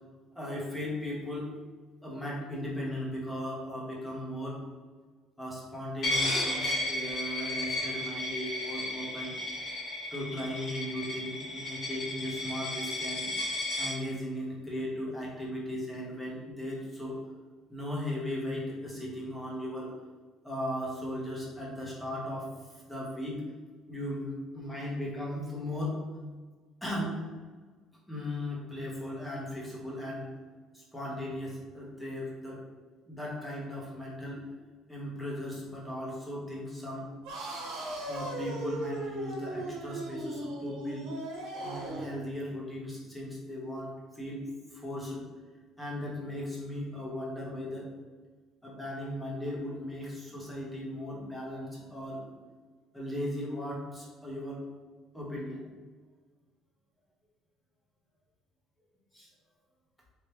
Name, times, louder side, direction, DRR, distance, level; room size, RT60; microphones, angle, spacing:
voice 1, 0.3-1.5 2.0-4.6 5.4-9.3 10.1-13.3 13.8-17.2 17.7-19.9 20.4-23.4 23.9-26.0 26.8-27.1 28.1-30.3 30.7-32.6 33.1-34.4 34.9-37.1 38.1-41.1 41.6-44.4 44.7-45.3 45.8-47.9 48.6-52.3 52.9-54.6 55.1-55.6 59.1-59.3, left 1 dB, 5° left, -5 dB, 1.0 m, -37 dB
Coin (dropping), 6.0-13.9, left 1 dB, 50° left, 1.3 m, -33 dB
sound 1, 37.2-42.2, right 2 dB, 85° right, 1.2 m, -37 dB
4.1 x 3.4 x 3.0 m, 1.4 s
cardioid pair, 155°, 0 cm